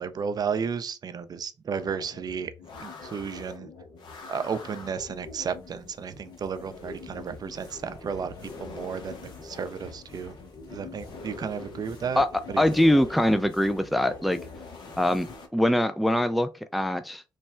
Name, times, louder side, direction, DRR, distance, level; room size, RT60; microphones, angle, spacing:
voice 1, 0.0-2.5 2.8-3.7 4.3-8.3 8.6-10.3 10.7-12.2 12.5-12.6, right 6 dB, 55° right, 0.5 m, -33 dB
sound 1, 1.7-15.5, left 3 dB, 75° left, 0.9 m, -44 dB
sound 2, 5.0-15.4, left 4 dB, 60° left, 1.5 m, -50 dB
voice 2, 12.6-14.4 15.0-17.2, left 1 dB, ahead, 0.4 m, -23 dB
3.2 x 2.2 x 4.2 m
cardioid pair, 65°, 8 cm